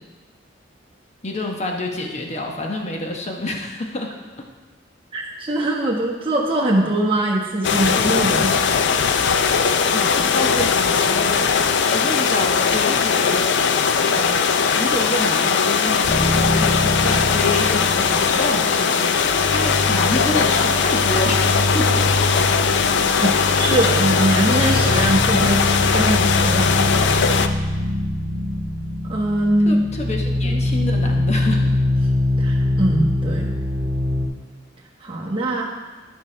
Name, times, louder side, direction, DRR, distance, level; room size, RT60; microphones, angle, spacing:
voice 1, 1.2-4.1 9.9-11.4 11.9-13.5 14.1-14.5 14.8-22.1 29.6-31.7, left 2 dB, 35° left, 1 dB, 1.0 m, -28 dB
voice 2, 5.1-8.5 23.2-25.6 25.9-26.7 29.0-29.8 30.5-30.6 32.4-33.5 35.0-35.6, right 1 dB, 30° right, -3 dB, 1.4 m, -22 dB
sound 1, 7.6-27.5, left 6 dB, 65° left, 0.4 m, -19 dB
sound 2, 16.0-18.9 19.2-34.3, left 1 dB, 50° right, 2.1 m, -23 dB
12.5 x 5.5 x 3.3 m, 1.3 s
head